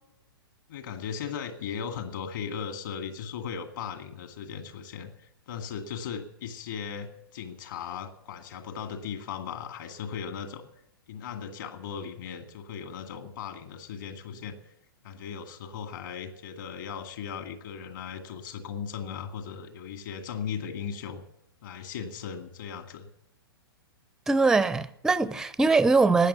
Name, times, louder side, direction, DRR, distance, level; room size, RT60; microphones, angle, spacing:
voice 1, 0.7-10.6 11.1-14.6 15.0-21.2 21.6-23.1, left 7 dB, 55° left, 2.2 m, -37 dB
voice 2, 24.3-26.3, right 3 dB, 5° right, 0.5 m, -22 dB
13.0 x 9.5 x 9.5 m
figure-of-eight pair, 110°, 13 cm